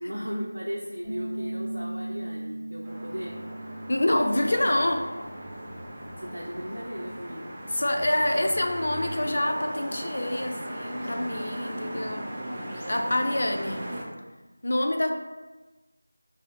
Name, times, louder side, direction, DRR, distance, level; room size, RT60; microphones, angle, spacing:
voice 1, 0.0-3.5 6.2-7.6, equal, 85° right, -3 dB, 0.4 m, -36 dB
Bass guitar, 1.0-7.3, right 1 dB, 50° right, 0.7 m, -39 dB
sound 1, 2.8-14.0, right 1 dB, 15° right, 0.4 m, -38 dB
voice 2, 3.9-5.1 7.7-12.3 12.9-13.9 14.6-15.1, left 1 dB, 55° left, 4 dB, 0.3 m, -26 dB
sound 2, 4.2-6.3, equal, 80° left, 0.8 m, -40 dB
2.6 x 2.0 x 2.9 m, 1.1 s
figure-of-eight pair, 170°, 0 cm